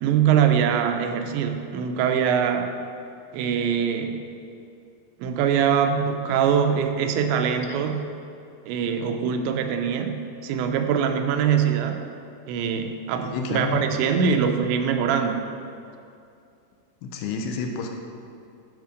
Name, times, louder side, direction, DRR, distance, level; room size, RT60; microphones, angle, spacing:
voice 1, 0.0-2.7 3.3-4.2 5.2-8.0 8.7-12.0 12.5-15.4, right 7 dB, 85° right, 6 dB, 2.9 m, -23 dB
voice 2, 13.2-13.8 17.0-17.9, left 5 dB, 80° left, 3 dB, 2.7 m, -29 dB
11.0 x 5.7 x 5.0 m, 2.5 s
omnidirectional pair, 5.1 m